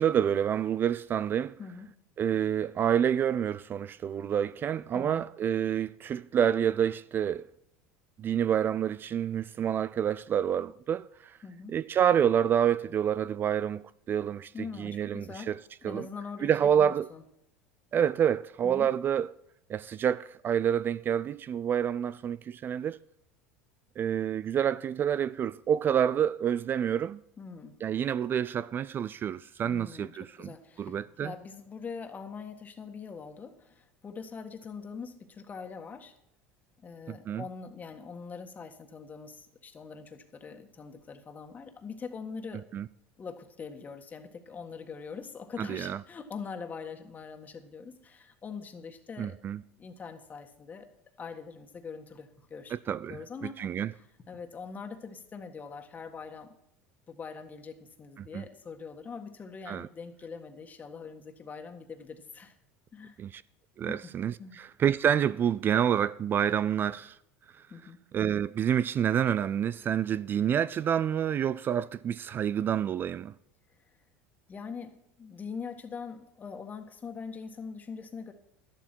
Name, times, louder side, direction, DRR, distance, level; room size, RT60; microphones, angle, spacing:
voice 1, 0.0-1.6 2.2-7.5 8.2-11.4 11.7-14.5 14.8-15.6 15.8-16.1 16.4-17.1 17.9-19.3 19.7-23.0 24.0-27.2 27.8-30.5 30.8-31.3 37.1-37.4 42.7-42.9 45.6-46.0 49.2-49.6 52.7-53.2 53.6-53.9 58.2-58.4 59.7-59.9 63.2-63.4 63.8-67.2 68.1-73.3, right 9 dB, 35° right, 0.3 m, -28 dB
voice 2, 1.6-1.9 4.9-5.2 11.4-11.7 14.5-15.5 15.8-17.2 18.6-18.9 27.4-27.8 29.6-36.1 36.8-42.6 43.2-49.4 49.8-50.9 51.2-52.7 53.1-56.5 57.1-62.5 62.9-63.2 63.8-64.1 64.4-64.6 67.7-68.0 74.5-78.3, left 5 dB, 25° left, 1.6 m, -43 dB
11.5 x 11.5 x 4.5 m
supercardioid pair, 105°, 6 cm